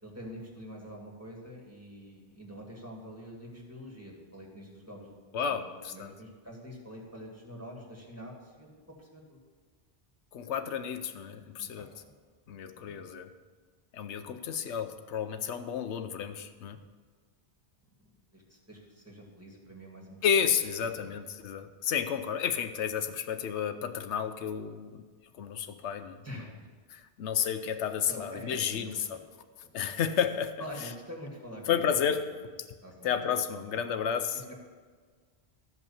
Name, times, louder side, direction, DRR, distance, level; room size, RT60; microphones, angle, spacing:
voice 1, 0.0-5.2 5.5-8.7 9.0-9.4 11.6-12.1 12.7-13.1 18.3-20.2 21.0-21.1 26.2-26.7 28.1-29.2 29.6-30.0 30.6-31.8 32.1-32.4 32.8-33.1 33.7-33.8 34.5-34.6, equal, 15° right, -2 dB, 2.1 m, -46 dB
voice 2, 5.3-6.1 10.3-11.9 12.5-13.3 13.9-16.8 20.2-25.0 25.3-26.2 26.9-29.2 29.7-30.5 30.8-30.9 31.7-32.2 33.0-34.4, left 8 dB, 90° left, 9 dB, 1.0 m, -31 dB
13.5 x 5.5 x 7.1 m, 1.5 s
omnidirectional pair, 1.1 m